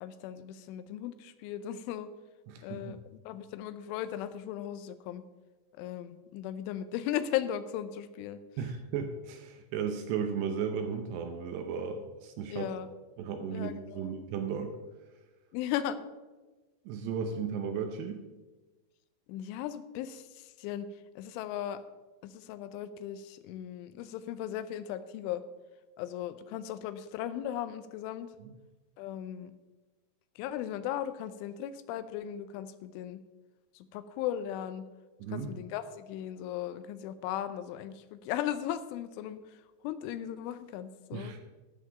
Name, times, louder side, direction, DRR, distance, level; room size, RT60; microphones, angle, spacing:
voice 1, 0.0-2.1 2.6-5.2 5.8-8.4 12.5-12.9 13.5-14.1 15.5-16.0 19.3-20.9 21.2-21.8 22.2-25.4 26.0-28.3 29.0-29.5 30.4-33.2 33.7-34.9 35.3-41.3, left 11 dB, 85° left, 12 dB, 3.1 m, -37 dB
voice 2, 2.5-3.0 8.6-12.7 13.2-14.8 16.9-18.2 28.4-28.5 35.2-35.5 41.1-41.4, right 6 dB, 75° right, 6 dB, 2.7 m, -35 dB
13.5 x 5.8 x 6.6 m, 1.2 s
omnidirectional pair, 5.6 m